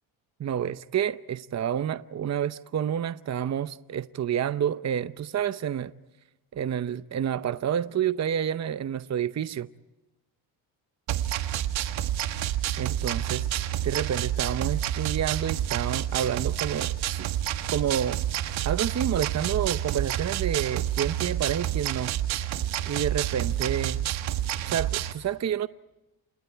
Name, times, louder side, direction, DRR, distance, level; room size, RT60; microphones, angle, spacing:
voice 1, 0.4-5.9 6.5-9.7 12.8-13.5 13.8-17.3 17.7-18.2 18.6-22.1 22.9-24.0 24.7-25.7, right 9 dB, 35° right, 0.8 m, -29 dB
sound 1, 11.1-25.1, right 12 dB, 75° right, 1.7 m, -29 dB
29.0 x 27.0 x 4.6 m
cardioid pair, 90°, 47 cm